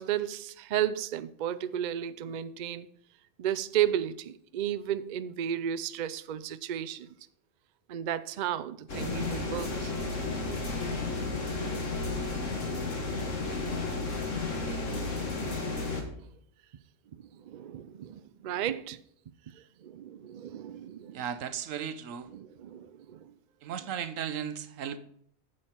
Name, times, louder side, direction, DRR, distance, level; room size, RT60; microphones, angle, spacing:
voice 1, 0.0-2.9 3.4-7.1 7.9-9.9 14.5-15.3 16.2-16.3 17.1-19.0 19.5-21.2 22.3-23.3, right 10 dB, 60° right, 0.4 m, -34 dB
sound 1, 8.9-16.0, left 3 dB, 75° left, 2.0 m, -32 dB
voice 2, 21.1-22.3 23.6-25.0, right 8 dB, 90° right, 1.2 m, -35 dB
9.3 x 7.4 x 4.4 m
omnidirectional pair, 1.3 m